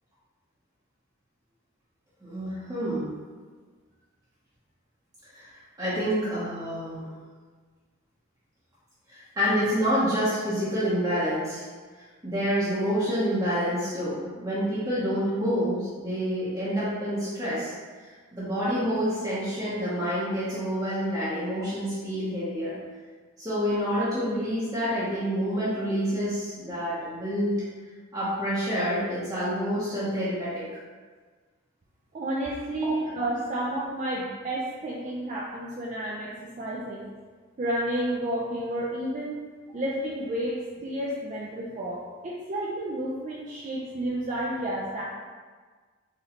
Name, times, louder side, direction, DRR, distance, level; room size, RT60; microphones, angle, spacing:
voice 1, 2.2-3.1 5.3-7.1 9.1-11.7 12.2-17.7 18.3-22.8 23.4-27.5 28.1-30.7 32.8-32.9, equal, 20° right, -10 dB, 0.8 m, -28 dB
voice 2, 32.1-37.1 37.6-39.4 39.7-45.0, right 1 dB, 35° right, -5 dB, 0.4 m, -31 dB
4.0 x 3.0 x 2.8 m, 1.5 s
head